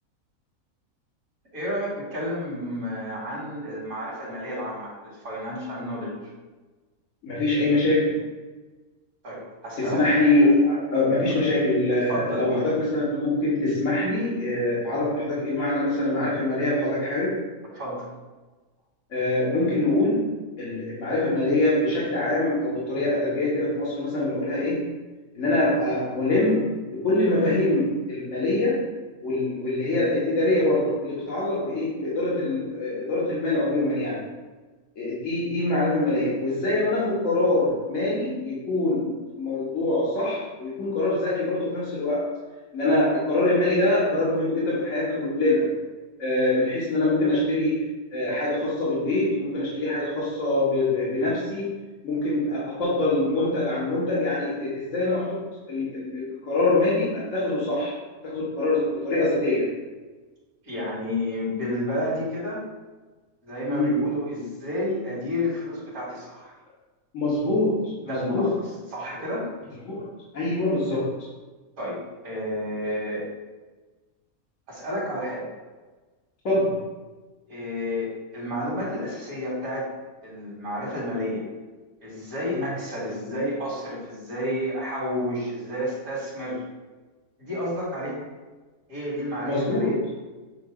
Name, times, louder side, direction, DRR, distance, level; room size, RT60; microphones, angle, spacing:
voice 1, 1.5-6.1 9.2-10.0 12.1-12.7 17.7-18.1 60.6-62.6 63.4-66.5 68.0-69.5 71.8-73.3 74.7-75.5 77.5-79.9 80.2-81.5 82.0-86.6 87.4-88.2 88.9-90.0, left 1 dB, 70° right, -7 dB, 2.2 m, -30 dB
voice 2, 7.2-8.2 9.8-17.4 19.1-24.9 25.3-28.9 29.2-34.3 35.0-42.3 42.7-45.7 46.2-51.8 52.0-58.0 58.2-59.7 63.7-64.1 67.1-68.5 69.8-70.0 70.3-71.1 76.4-76.8 82.5-82.7 89.5-90.0, left 2 dB, 60° left, -8 dB, 1.8 m, -24 dB
7.7 x 2.6 x 4.9 m, 1.2 s
omnidirectional pair, 1.5 m